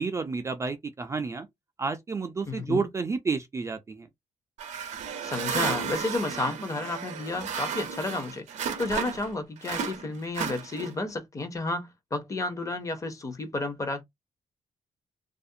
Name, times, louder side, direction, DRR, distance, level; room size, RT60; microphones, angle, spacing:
voice 1, 0.0-1.5 1.8-4.1, right 4 dB, 25° right, 0.3 m, -30 dB
voice 2, 2.5-2.8 5.2-8.4 8.8-14.0, left 2 dB, 25° left, 0.6 m, -31 dB
sound 1, 4.6-9.3 9.6-11.1, right 7 dB, 65° right, 0.6 m, -33 dB
2.4 x 2.1 x 2.6 m
cardioid pair, 130°, 13 cm